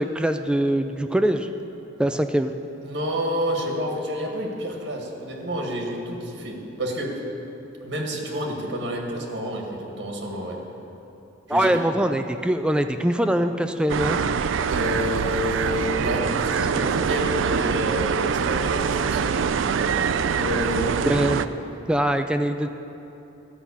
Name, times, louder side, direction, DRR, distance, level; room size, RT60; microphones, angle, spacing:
voice 1, 0.0-1.5 2.0-2.5 11.5-14.2 21.0-21.4 21.9-22.7, right 1 dB, 5° right, 7 dB, 0.3 m, -22 dB
voice 2, 2.8-7.2 7.8-10.6 11.5-11.7 14.7-19.4 20.3-21.0, equal, 65° right, 0 dB, 1.8 m, -29 dB
sound 1, 13.9-21.5, right 6 dB, 85° right, 0.4 m, -24 dB
12.5 x 5.6 x 8.3 m, 3.0 s
head